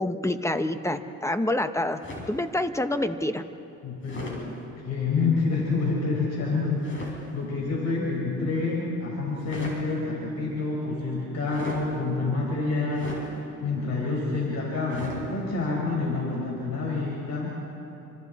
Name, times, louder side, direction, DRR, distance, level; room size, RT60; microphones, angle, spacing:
voice 1, 0.0-2.0 2.3-3.4, left 1 dB, 10° left, 8 dB, 1.1 m, -27 dB
sound 1, 2.0-2.4 4.0-4.4 6.8-7.2 9.3-9.8 11.5-11.9 12.9-13.3 14.9-15.2, left 1 dB, 40° left, 6.5 m, -38 dB
voice 2, 3.8-4.5 4.8-17.5, left 3 dB, 60° left, -3 dB, 4.9 m, -28 dB
29.0 x 25.5 x 4.3 m, 2.9 s
cardioid pair, 90°, 30 cm